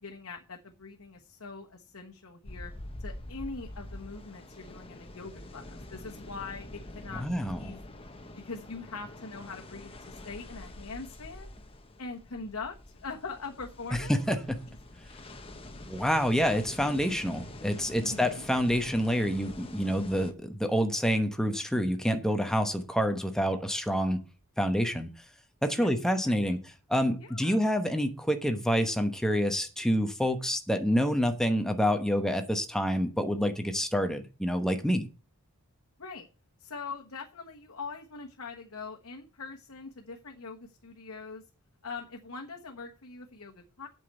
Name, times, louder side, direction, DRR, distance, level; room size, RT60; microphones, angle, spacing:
voice 1, 0.0-2.7 3.0-8.0 8.3-11.5 12.0-14.2 18.0-18.4 25.8-25.9 26.4-26.5 27.2-27.6 36.0-36.3 36.6-41.4 41.8-43.9, left 4 dB, 70° left, 1.3 m, -42 dB
sound 1, 2.4-20.3, left 1 dB, 25° left, 1.1 m, -46 dB
voice 2, 7.1-7.8 13.9-14.6 15.9-24.2 24.6-25.1 25.6-26.6 26.9-35.1, equal, ahead, 1.0 m, -27 dB
8.3 x 6.1 x 8.1 m
head